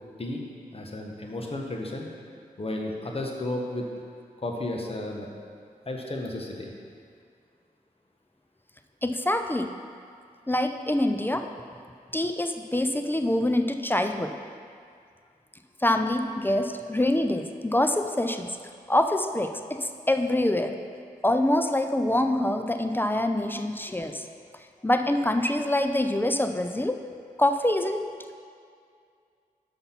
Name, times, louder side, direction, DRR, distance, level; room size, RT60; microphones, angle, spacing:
voice 1, 0.7-2.1 2.6-3.8 4.4-5.3 5.8-6.7, left 1 dB, 40° left, 0 dB, 1.2 m, -33 dB
voice 2, 9.0-9.7 10.5-11.5 12.1-14.3 15.8-18.6 18.9-20.8 21.2-24.2 24.8-27.0 27.4-28.0, left 1 dB, 15° left, 7 dB, 0.5 m, -25 dB
5.7 x 5.6 x 5.8 m, 2.2 s
cardioid pair, 50°, 16 cm